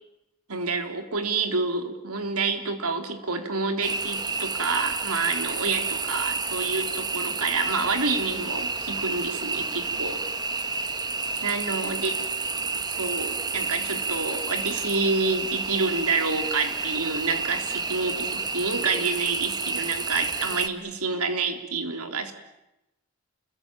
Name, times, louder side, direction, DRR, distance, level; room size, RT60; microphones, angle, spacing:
voice 1, 0.5-10.2 11.4-12.1 13.0-22.3, right 4 dB, 90° right, 7 dB, 3.7 m, -28 dB
sound 1, 3.8-20.7, right 4 dB, 20° right, 1.6 m, -30 dB
29.5 x 22.5 x 9.0 m, 0.92 s
head